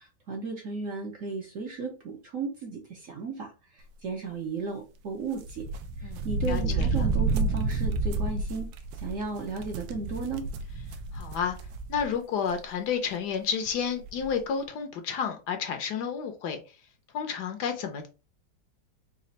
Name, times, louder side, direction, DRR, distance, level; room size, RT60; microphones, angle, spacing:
voice 1, 0.0-5.7 6.0-10.5, right 4 dB, 60° right, 0.9 m, -35 dB
sound 1, 5.4-12.1 12.5-12.6 13.7-13.8 14.0-14.3, right 3 dB, 80° right, 1.3 m, -30 dB
voice 2, 6.0-7.1 11.1-11.6 11.9-16.6 17.1-18.1, left 7 dB, 70° left, 1.1 m, -31 dB
4.2 x 2.4 x 3.9 m
omnidirectional pair, 2.0 m